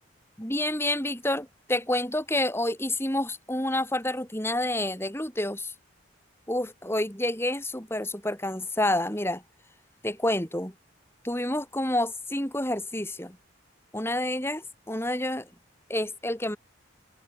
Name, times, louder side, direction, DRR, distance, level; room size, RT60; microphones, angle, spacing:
voice 1, 0.4-5.7 6.5-9.4 10.0-10.7 11.2-13.4 13.9-15.5 15.9-16.6, left 1 dB, 10° left, 5.9 m, -28 dB
head